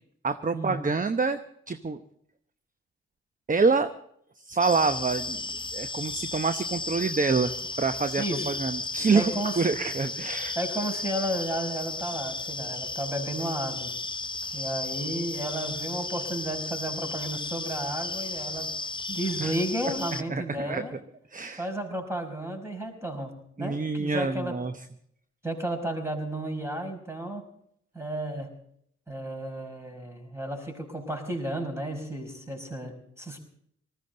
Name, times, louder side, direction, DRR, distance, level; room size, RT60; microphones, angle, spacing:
voice 1, 0.2-1.4 1.7-2.0 3.5-3.9 4.4-5.5 5.7-7.5 7.8-10.6 19.4-19.5 20.3-20.8 21.3-21.7 23.6-24.8, right 4 dB, 25° right, 10 dB, 0.9 m, -26 dB
sound 1, 4.6-20.2, left 3 dB, 15° left, 0.8 m, -34 dB
voice 2, 8.2-8.5 9.1-9.6 10.5-13.9 14.5-18.7 19.1-20.9 21.6-24.6 25.4-27.4 27.9-28.5 29.1-33.4, right 1 dB, 10° right, 4 dB, 5.1 m, -33 dB
19.5 x 15.0 x 3.9 m, 0.69 s
hypercardioid pair, 40°, 31 cm